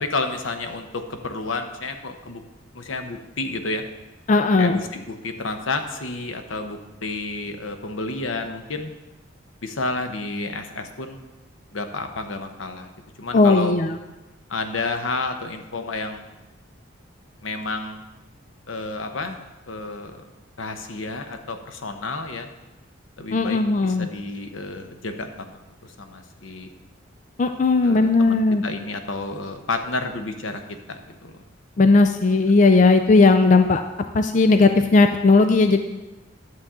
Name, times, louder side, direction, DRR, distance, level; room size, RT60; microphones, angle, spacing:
voice 1, 0.0-2.4 2.7-3.8 4.6-8.9 9.6-11.2 11.7-12.9 13.2-13.8 14.5-16.2 17.4-18.0 18.7-19.4 19.7-20.3 20.6-22.5 23.2-26.7 27.8-31.4, left 3 dB, 85° left, 6 dB, 0.9 m, -30 dB
voice 2, 4.3-4.8 13.3-14.0 23.3-24.1 27.4-28.6 31.8-33.8 34.1-35.8, left 3 dB, 40° left, 7 dB, 0.4 m, -17 dB
11.5 x 7.0 x 3.7 m, 1.1 s
head